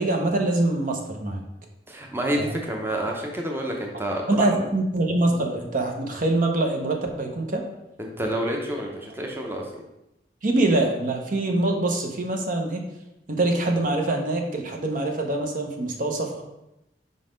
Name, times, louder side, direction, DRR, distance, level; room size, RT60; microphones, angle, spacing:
voice 1, 0.0-1.4 2.5-2.6 4.3-7.6 10.4-12.8 13.3-16.4, right 2 dB, 50° right, 3 dB, 0.8 m, -24 dB
voice 2, 1.9-4.5 8.0-9.8, right 1 dB, 15° right, 0 dB, 0.8 m, -29 dB
5.2 x 3.9 x 5.1 m, 0.90 s
head